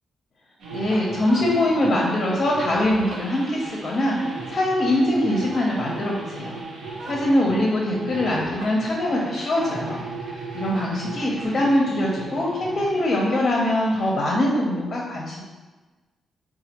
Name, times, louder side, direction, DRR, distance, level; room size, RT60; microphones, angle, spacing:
sound 1, 0.6-14.1, right 3 dB, 90° right, 0.6 m, -36 dB
voice 1, 0.7-6.6 7.0-15.4, left 1 dB, 40° left, -3 dB, 0.6 m, -23 dB
4.2 x 2.4 x 2.8 m, 1.3 s
cardioid pair, 115°, 0 cm